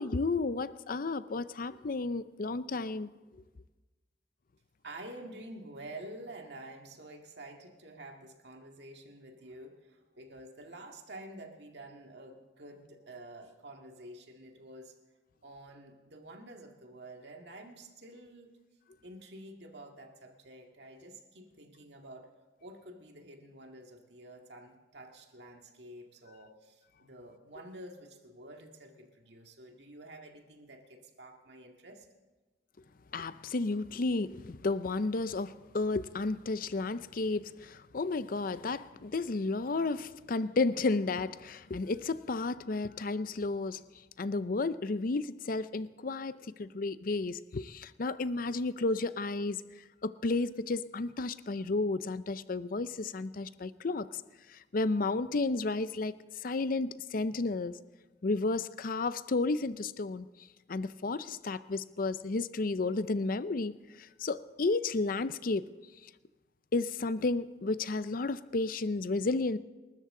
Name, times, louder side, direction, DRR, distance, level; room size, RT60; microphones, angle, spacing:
voice 1, 0.0-3.1 33.1-43.8 44.2-49.6 50.0-54.1 54.7-56.1 56.4-57.8 58.2-60.3 60.7-63.7 64.2-65.6 66.7-69.6, left 3 dB, 50° left, 0.6 m, -32 dB
voice 2, 4.8-14.9 15.4-18.6 19.0-22.3 22.6-32.1, right 1 dB, 70° right, 2.0 m, -49 dB
27.5 x 13.5 x 3.8 m
head